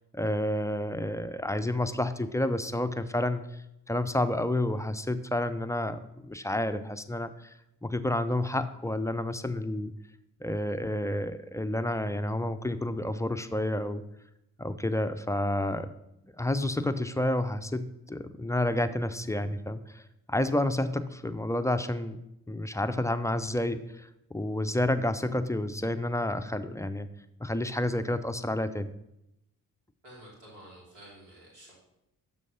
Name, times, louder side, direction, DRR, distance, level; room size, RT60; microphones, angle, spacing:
voice 1, 0.1-3.4 3.9-7.5 7.8-9.9 10.4-14.0 14.6-15.9 16.4-20.0 20.3-22.2 22.5-27.1 27.4-28.9, left 1 dB, 10° left, 11 dB, 0.3 m, -30 dB
voice 2, 30.0-31.7, right 1 dB, 80° right, -4 dB, 2.6 m, -50 dB
6.4 x 3.7 x 5.5 m, 0.84 s
hypercardioid pair, 45°, 41 cm